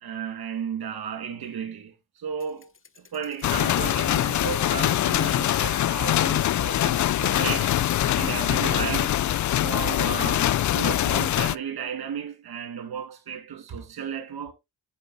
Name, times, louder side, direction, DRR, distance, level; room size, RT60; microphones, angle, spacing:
voice 1, 0.0-2.7 3.1-7.8 8.1-9.2 9.6-14.5, right 7 dB, 70° right, 2.2 m, -34 dB
Thump thud, 2.4-6.4 6.8-7.6, left 6 dB, 35° left, 0.8 m, -43 dB
sound 1, 3.4-11.5, left 13 dB, 50° left, 0.4 m, -23 dB
8.3 x 5.2 x 4.0 m
supercardioid pair, 45°, 38 cm